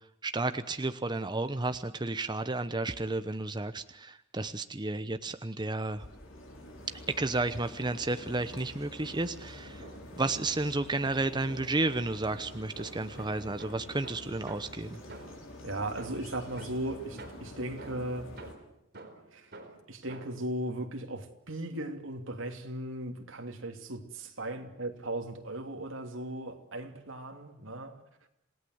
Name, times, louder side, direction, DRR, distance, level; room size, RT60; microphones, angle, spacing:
voice 1, 0.2-6.1 7.2-9.8 10.2-15.0, right 2 dB, 25° right, 0.9 m, -32 dB
Morning in Yarkon park - Tel Aviv Israel, 5.9-18.5, left 1 dB, 80° left, 6.4 m, -47 dB
sound 1, 9.8-10.7 11.1-15.6 16.0-20.5, right 2 dB, 55° right, 4.4 m, -50 dB
voice 2, 15.6-18.3 19.3-19.5 19.9-28.0, right 1 dB, 70° right, 3.1 m, -37 dB
27.5 x 18.0 x 8.0 m
head